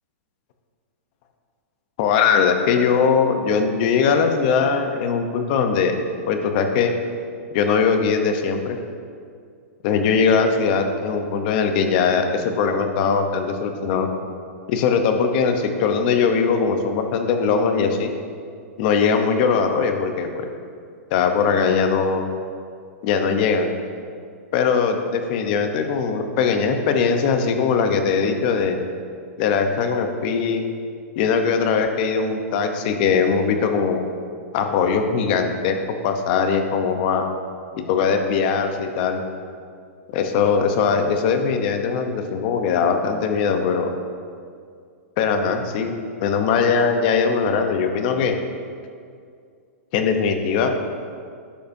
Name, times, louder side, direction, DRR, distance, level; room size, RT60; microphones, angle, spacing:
voice 1, 2.0-6.0 6.3-6.9 7.5-8.8 9.8-14.1 14.7-18.1 18.8-20.5 21.1-22.3 23.0-23.7 24.5-28.8 29.4-30.6 31.2-34.0 34.5-35.8 36.0-37.2 37.8-39.2 40.1-43.9 45.2-45.9 46.2-48.4 49.9-50.7, left 5 dB, 40° left, 6 dB, 0.8 m, -20 dB
11.5 x 7.9 x 2.7 m, 2.2 s
hypercardioid pair, 160°, 8 cm